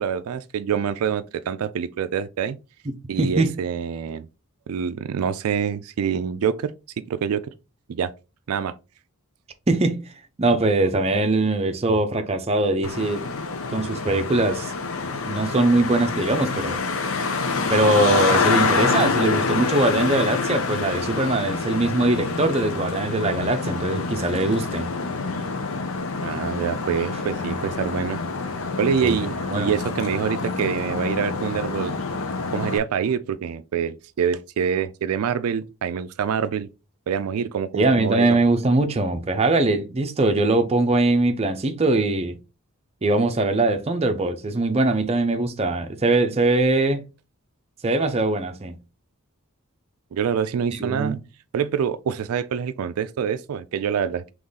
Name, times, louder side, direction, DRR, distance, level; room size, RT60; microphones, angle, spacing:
voice 1, 0.0-2.6 3.1-4.3 4.7-6.7 7.1-7.4 7.9-8.1 8.5-8.7 26.2-28.2 28.6-31.9 32.5-36.7 37.1-38.4 50.1-51.2 51.5-54.3, right 7 dB, 85° right, 0.4 m, -26 dB
voice 2, 3.2-3.5 9.7-10.0 10.4-13.3 13.7-14.7 15.3-16.8 17.7-24.9 29.0-29.2 29.5-29.7 37.7-42.4 43.0-47.0 47.8-48.7 50.7-51.2, right 2 dB, 30° right, 0.6 m, -21 dB
Traffic noise roadway noise, 12.8-32.8, left 4 dB, 70° left, 0.7 m, -27 dB
3.7 x 3.1 x 3.9 m
head